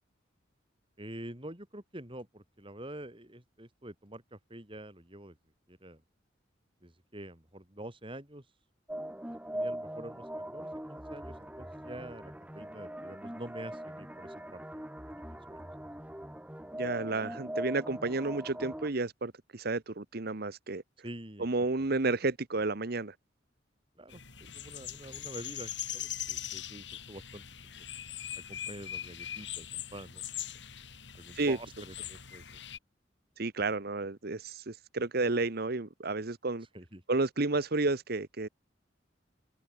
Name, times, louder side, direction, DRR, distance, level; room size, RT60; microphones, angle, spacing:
voice 1, 1.0-5.4 5.7-6.0 6.8-8.5 9.3-15.9 21.0-21.5 24.0-27.4 27.8-27.9 28.4-30.2 31.1-32.6 36.7-37.0, right 1 dB, 25° right, 4.6 m, -47 dB
sound 1, 8.9-18.9, right 1 dB, 5° right, 2.4 m, -41 dB
voice 2, 16.8-20.8 21.4-23.1 31.3-31.6 33.4-36.7 37.1-38.5, right 3 dB, 55° right, 1.1 m, -31 dB
sound 2, 24.1-32.8, left 10 dB, 65° left, 3.5 m, -41 dB
head